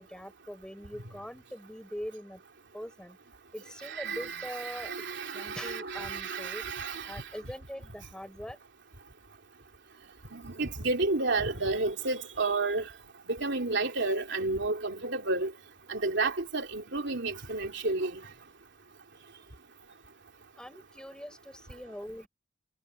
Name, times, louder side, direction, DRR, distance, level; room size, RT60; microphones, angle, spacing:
voice 1, 0.0-2.4 2.7-3.2 3.5-5.1 5.3-6.6 7.1-8.6 20.6-22.3, equal, 5° left, 6.7 m, -42 dB
voice 2, 3.8-7.2 10.3-12.9 13.3-15.5 15.9-18.2, right 3 dB, 65° right, 3.3 m, -31 dB
head